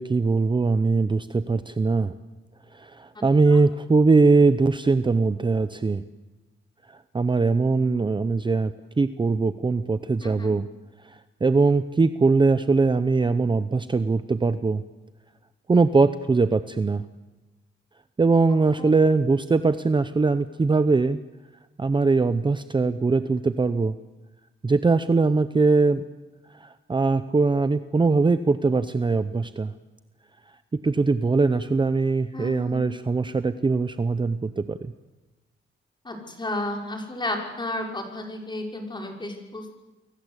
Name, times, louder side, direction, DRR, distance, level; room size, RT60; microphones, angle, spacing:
voice 1, 0.0-2.1 2.7-6.0 7.1-10.7 11.1-14.8 15.7-17.0 18.2-21.2 21.8-24.0 24.6-26.0 26.6-29.7 30.8-34.9, right 3 dB, 25° right, 11 dB, 0.8 m, -21 dB
voice 2, 3.1-3.6 10.2-10.5 18.8-18.9 32.3-32.9 36.0-39.7, left 1 dB, 20° left, 2 dB, 5.8 m, -33 dB
29.5 x 22.5 x 8.3 m, 1.1 s
wide cardioid pair, 135°, 20 cm